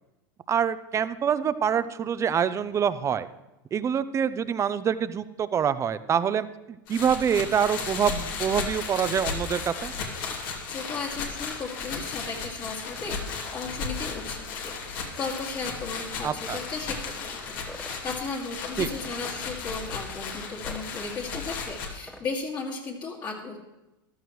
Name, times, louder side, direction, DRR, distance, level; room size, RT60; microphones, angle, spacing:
voice 1, 0.5-3.3 3.7-9.9 16.2-16.6 18.8-18.9, right 8 dB, 25° right, 14 dB, 0.6 m, -26 dB
sound 1, 6.9-21.9, left 5 dB, 70° left, 2.5 m, -35 dB
voice 2, 10.7-23.6, left 4 dB, 35° left, -1 dB, 2.2 m, -36 dB
sound 2, 17.7-18.0 18.9-19.2 20.6-20.9 22.1-22.3, left 1 dB, 5° left, 1.0 m, -44 dB
14.0 x 12.5 x 3.1 m, 1.0 s
hypercardioid pair, 105°, 12 cm